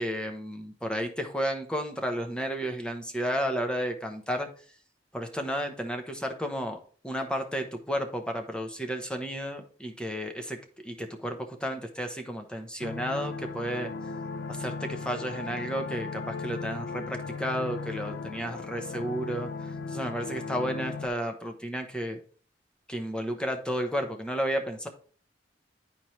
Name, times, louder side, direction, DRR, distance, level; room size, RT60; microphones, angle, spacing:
voice 1, 0.0-4.5 5.1-6.8 7.0-10.6 10.8-13.9 14.5-19.5 19.9-22.2 22.9-24.9, equal, 5° left, 4 dB, 0.8 m, -32 dB
sound 1, 12.8-21.1, left 4 dB, 75° left, 0.5 m, -37 dB
10.5 x 4.3 x 3.1 m, 0.43 s
head